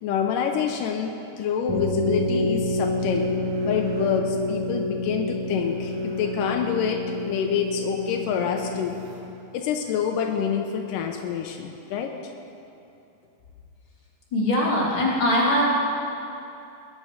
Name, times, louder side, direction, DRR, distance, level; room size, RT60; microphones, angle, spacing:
voice 1, 0.0-3.3 3.7-9.0 9.5-12.1, left 7 dB, 85° left, 3 dB, 2.3 m, -27 dB
sound 1, 1.7-9.2, left 1 dB, 65° right, 3.5 m, -28 dB
voice 2, 14.3-15.7, left 1 dB, 35° left, -6 dB, 3.5 m, -21 dB
20.0 x 10.0 x 5.1 m, 2.7 s
omnidirectional pair, 3.9 m